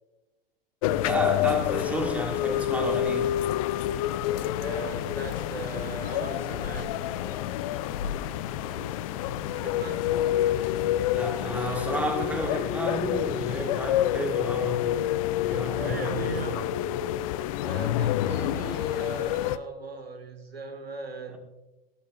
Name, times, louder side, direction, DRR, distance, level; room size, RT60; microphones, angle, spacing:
sound 1, 0.8-19.6, left 13 dB, 35° left, 0.5 m, -28 dB
voice 1, 1.0-3.4 11.1-15.0 15.4-16.7, right 1 dB, 5° right, 2 dB, 1.6 m, -31 dB
sound 2, 4.2-12.0, left 5 dB, 70° left, 1.5 m, -40 dB
voice 2, 4.6-7.2 9.5-10.3 15.7-16.8 17.6-21.4, right 3 dB, 80° right, 6 dB, 1.9 m, -38 dB
16.5 x 13.0 x 2.5 m, 1.0 s
figure-of-eight pair, 95°, 30 cm